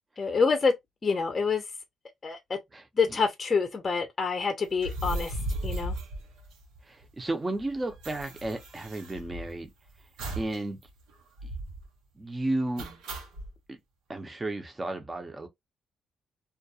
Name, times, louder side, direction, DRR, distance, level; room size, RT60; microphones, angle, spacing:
voice 1, 0.2-0.7 1.0-1.6 2.2-2.6 3.0-5.4 5.6-6.0, left 5 dB, 35° left, 0.6 m, -26 dB
sound 1, 4.7-7.0 7.3-7.4 7.6-9.7 10.2-10.6 10.9-11.0 11.4-11.9 12.8-13.5, right 1 dB, 85° right, 0.7 m, -36 dB
voice 2, 6.8-9.7 10.4-10.8 11.4-11.5 12.2-12.9 13.7-13.8 14.1-15.5, right 2 dB, 20° right, 0.6 m, -33 dB
2.3 x 2.2 x 2.7 m
cardioid pair, 90°, 0 cm